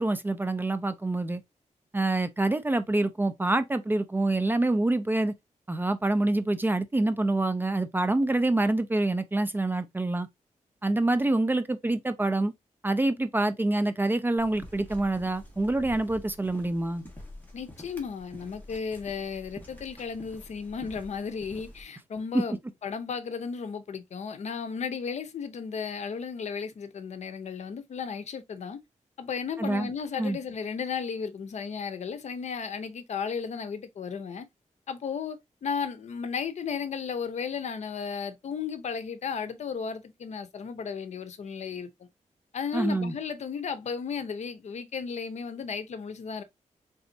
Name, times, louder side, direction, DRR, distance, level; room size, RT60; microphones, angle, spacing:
voice 1, 0.0-1.4 1.9-5.3 5.7-10.3 10.8-12.5 12.8-17.0 22.3-22.4 29.6-29.9 30.2-30.4 42.7-43.1, right 2 dB, 15° right, 0.4 m, -26 dB
sound 1, 14.4-21.8, left 1 dB, 15° left, 1.3 m, -47 dB
voice 2, 17.5-28.8 29.2-34.5 34.9-42.1 42.5-46.4, left 6 dB, 65° left, 0.6 m, -34 dB
4.0 x 3.4 x 2.6 m
wide cardioid pair, 145°, 13 cm